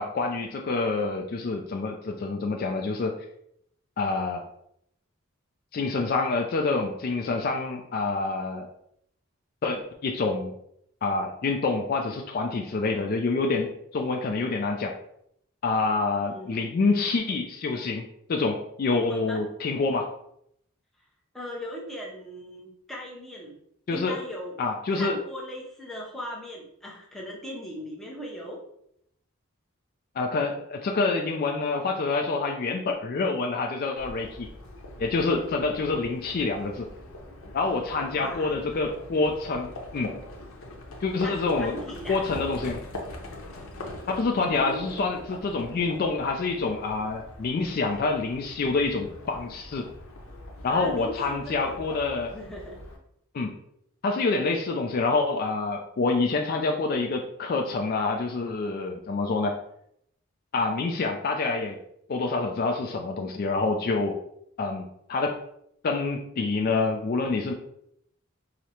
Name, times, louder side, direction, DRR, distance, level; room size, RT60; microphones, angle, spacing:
voice 1, 0.0-3.2 4.0-4.5 5.7-8.7 9.6-10.5 11.0-14.9 15.6-18.0 18.3-20.1 23.9-24.2 24.6-25.2 30.2-34.5 35.0-36.9 37.5-40.2 41.0-41.8 42.1-42.8 44.1-49.9 50.6-52.3 53.3-53.6 54.0-59.6 60.5-61.8 62.1-64.2 64.6-64.8 65.1-65.4 65.8-67.5, left 3 dB, 45° left, 3 dB, 0.3 m, -27 dB
voice 2, 16.3-16.7 19.1-19.4 21.3-23.6 23.9-24.5 24.9-28.6 38.1-38.5 41.2-42.2 44.4-45.0 50.7-51.8 52.3-52.8, equal, ahead, -4 dB, 0.6 m, -39 dB
Livestock farm animals working animals, 34.0-53.0, left 1 dB, 80° left, 0.7 m, -42 dB
4.9 x 2.0 x 2.8 m, 0.74 s
head